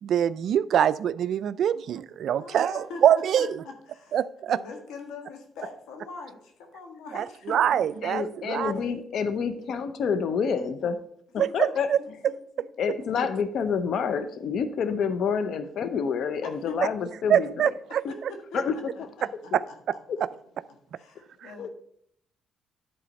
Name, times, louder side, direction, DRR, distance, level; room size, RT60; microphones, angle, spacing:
voice 1, 0.0-3.6 4.1-4.6 7.1-8.7 11.4-12.0 17.3-18.0 19.5-19.6 21.4-21.7, right 9 dB, 70° right, 17 dB, 0.3 m, -24 dB
voice 2, 2.4-3.0 3.4-4.2 4.5-7.8 8.5-9.1 11.4-11.5 12.3-12.7 16.4-16.7 17.9-19.8 20.9-21.7, left 4 dB, 90° left, 4 dB, 1.5 m, -42 dB
voice 3, 8.0-11.0 11.5-12.2 12.8-17.7 18.0-18.1 18.5-19.1 19.5-19.7 20.1-20.2 21.6-21.7, left 6 dB, 70° left, 11 dB, 0.7 m, -28 dB
10.0 x 4.1 x 5.2 m, 0.67 s
cardioid pair, 90°, 0 cm